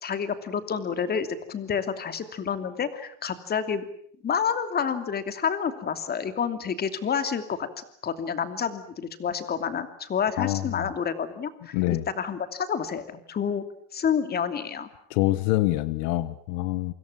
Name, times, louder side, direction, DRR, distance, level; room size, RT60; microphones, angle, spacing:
voice 1, 0.0-3.9 4.2-11.7 12.2-13.6 13.9-14.9, left 7 dB, 25° left, 10 dB, 2.8 m, -29 dB
voice 2, 10.4-10.9 11.7-12.1 15.1-16.9, left 17 dB, 75° left, 15 dB, 1.5 m, -25 dB
28.0 x 26.0 x 7.3 m, 0.65 s
cardioid pair, 140°, 35 cm